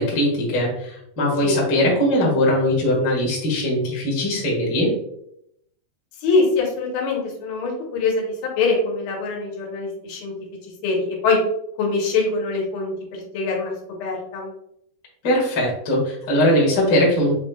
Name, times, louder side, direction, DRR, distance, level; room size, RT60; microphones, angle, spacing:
voice 1, 0.0-4.9 15.2-17.3, left 1 dB, 45° left, -4 dB, 1.3 m, -20 dB
voice 2, 6.2-10.3 10.8-11.4 11.8-13.7 14.0-14.5, left 3 dB, 80° left, 0 dB, 2.8 m, -23 dB
7.3 x 3.1 x 2.2 m, 0.75 s
omnidirectional pair, 4.2 m